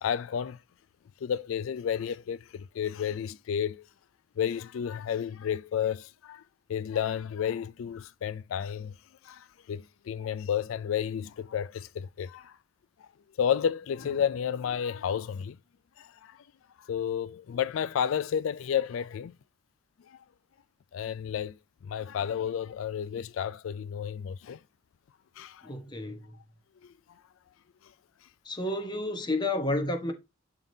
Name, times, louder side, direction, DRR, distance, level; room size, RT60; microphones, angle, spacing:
voice 1, 0.0-0.6 1.2-3.8 4.4-6.4 6.7-8.9 9.2-12.6 13.0-13.1 13.4-15.6 16.0-16.4 16.8-19.3 20.1-20.2 20.9-21.6 21.8-24.6 25.4-25.8 26.8-26.9, left 8 dB, 85° left, 0.3 m, -31 dB
voice 2, 25.6-26.4 28.4-30.1, left 2 dB, 20° left, 1.1 m, -31 dB
11.0 x 3.7 x 2.7 m
head